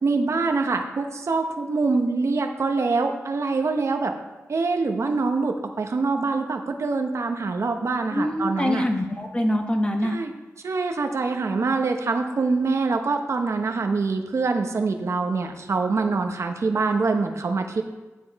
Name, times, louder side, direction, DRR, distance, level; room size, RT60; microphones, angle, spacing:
voice 1, 0.0-4.1 4.5-8.9 10.0-10.3 10.6-17.8, right 3 dB, 60° right, 5 dB, 0.9 m, -24 dB
voice 2, 8.1-10.2, left 1 dB, 20° left, 4 dB, 1.2 m, -24 dB
9.2 x 7.7 x 4.7 m, 1.2 s
wide cardioid pair, 85°, 5 cm